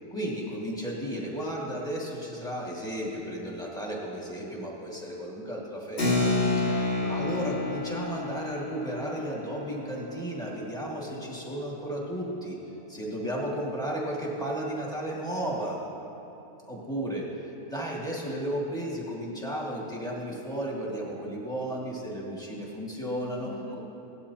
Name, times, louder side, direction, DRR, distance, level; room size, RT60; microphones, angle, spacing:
voice 1, 0.1-6.1 7.1-12.5 12.9-15.8 16.7-17.3 17.7-23.5, right 1 dB, ahead, -4 dB, 1.7 m, -34 dB
voice 2, 6.0-7.2 23.4-23.8, left 5 dB, 60° left, 2 dB, 0.8 m, -41 dB
Keyboard (musical), 6.0-12.0, left 2 dB, 40° left, 2.0 m, -30 dB
17.5 x 12.0 x 2.8 m, 3.0 s
omnidirectional pair, 1.8 m